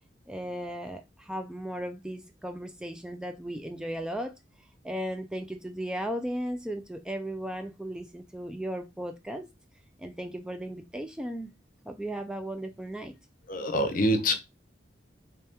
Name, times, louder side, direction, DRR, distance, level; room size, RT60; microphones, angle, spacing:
voice 1, 0.3-4.3 4.8-9.4 10.0-11.5 11.9-13.1, equal, 5° right, 0.3 m, -36 dB
voice 2, 13.5-14.4, equal, 45° left, 0.6 m, -25 dB
3.4 x 3.2 x 2.9 m
head